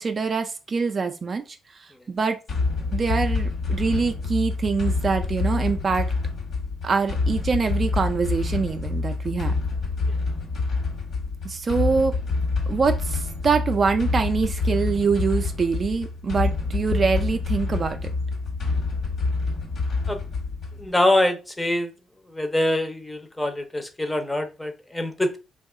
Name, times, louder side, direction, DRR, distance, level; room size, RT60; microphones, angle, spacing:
voice 1, 0.0-1.4 1.8-2.4 2.9-6.1 6.8-9.5 11.4-12.2 12.7-18.0, right 5 dB, 40° right, 0.4 m, -24 dB
sound 1, 2.5-20.9, left 3 dB, 60° left, 1.2 m, -27 dB
voice 2, 20.8-21.9 22.3-25.4, left 1 dB, 15° left, 0.6 m, -24 dB
2.7 x 2.3 x 3.7 m
cardioid pair, 90°, 0 cm